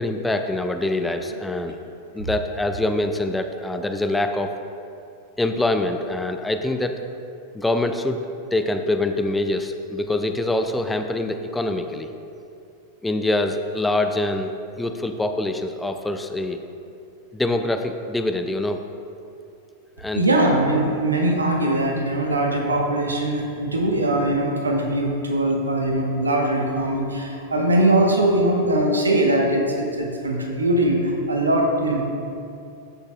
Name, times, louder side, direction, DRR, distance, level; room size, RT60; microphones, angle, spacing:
voice 1, 0.0-1.8 2.1-4.5 5.4-7.0 7.5-8.2 8.5-12.1 13.0-16.6 17.3-18.8 20.0-20.2, left 2 dB, 5° left, 6 dB, 0.4 m, -24 dB
voice 2, 20.1-32.0, right 1 dB, 75° right, 1 dB, 1.1 m, -21 dB
13.5 x 6.4 x 2.4 m, 2.5 s
figure-of-eight pair, 90°, 0 cm